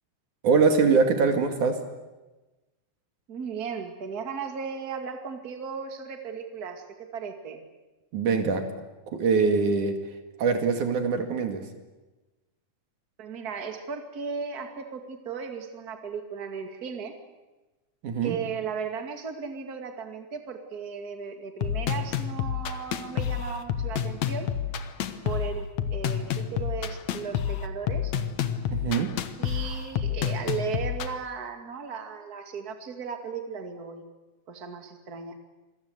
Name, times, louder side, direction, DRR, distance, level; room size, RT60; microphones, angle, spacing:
voice 1, 0.4-1.8 8.1-8.6 9.1-10.0 10.4-11.6 18.0-18.4 28.7-29.1, right 5 dB, 75° right, 6 dB, 3.7 m, -23 dB
voice 2, 3.3-7.6 13.2-17.1 18.2-24.5 25.2-28.2 29.4-34.0 34.5-35.4, right 6 dB, 30° right, 5 dB, 2.6 m, -36 dB
sound 1, 21.6-31.1, left 9 dB, 65° left, 2.4 m, -29 dB
27.5 x 22.0 x 8.1 m, 1.1 s
omnidirectional pair, 3.5 m